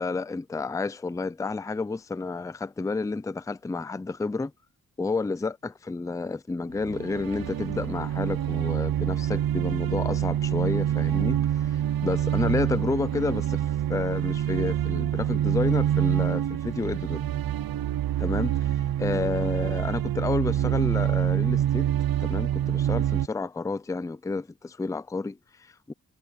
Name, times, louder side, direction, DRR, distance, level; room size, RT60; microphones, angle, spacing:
voice 1, 0.0-4.5 5.0-13.6 13.9-17.3 18.2-21.9 22.2-25.9, left 3 dB, 10° left, 0.4 m, -30 dB
sound 1, 6.7-23.3, right 11 dB, 90° right, 0.6 m, -26 dB
wide cardioid pair, 180°, 35 cm